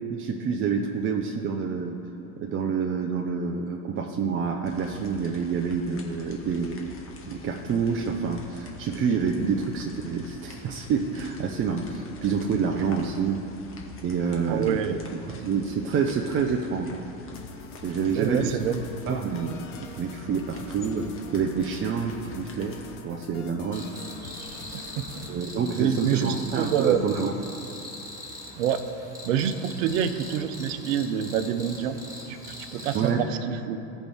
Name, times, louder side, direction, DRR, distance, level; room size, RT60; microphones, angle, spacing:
voice 1, 0.1-2.0 2.4-7.0 7.3-13.4 14.0-15.0 15.3-17.0 17.8-18.6 19.1-19.6 20.0-22.8 23.0-23.9 24.4-24.6 25.3-27.3 32.9-33.3, right 6 dB, 30° right, 1 dB, 0.6 m, -27 dB
sound 1, 4.6-23.0, left 4 dB, 30° left, 1.4 m, -46 dB
voice 2, 14.5-15.0 18.2-18.8 24.7-25.3 25.8-27.0 28.6-28.8 29.2-32.0 32.3-33.8, right 9 dB, 65° right, 10 dB, 0.7 m, -27 dB
sound 2, 17.3-25.3, left 5 dB, 65° left, 1.0 m, -45 dB
Cricket, 23.7-33.1, left 1 dB, 10° right, 2.1 m, -42 dB
15.5 x 5.1 x 3.5 m, 2.8 s
hypercardioid pair, 80°, 41 cm